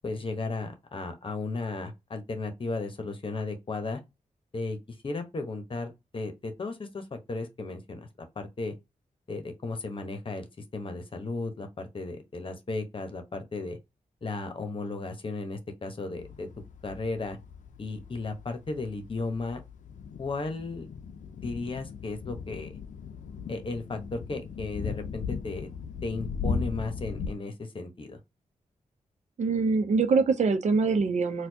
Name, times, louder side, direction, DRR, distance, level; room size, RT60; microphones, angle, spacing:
voice 1, 0.0-4.0 4.5-4.8 5.0-8.1 8.4-8.7 9.3-10.5 10.7-13.8 14.2-16.5 16.8-17.4 17.8-19.6 20.2-20.9 21.4-22.7 23.5-25.7 26.0-28.2, left 3 dB, 45° left, 1.0 m, -35 dB
sound 1, 16.2-27.3, left 5 dB, 80° left, 0.5 m, -38 dB
voice 2, 29.4-31.5, right 4 dB, 65° right, 0.7 m, -24 dB
4.2 x 2.3 x 2.8 m
wide cardioid pair, 100°, 13 cm